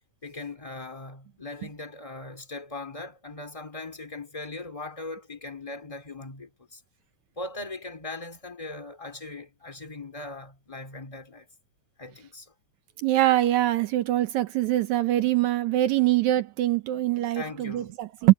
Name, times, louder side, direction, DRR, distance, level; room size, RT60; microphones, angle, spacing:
voice 1, 0.2-6.8 7.4-11.5 12.0-12.5 17.3-17.9, left 2 dB, 10° left, 2.2 m, -39 dB
voice 2, 13.0-18.3, right 15 dB, 75° right, 1.8 m, -23 dB
omnidirectional pair, 4.0 m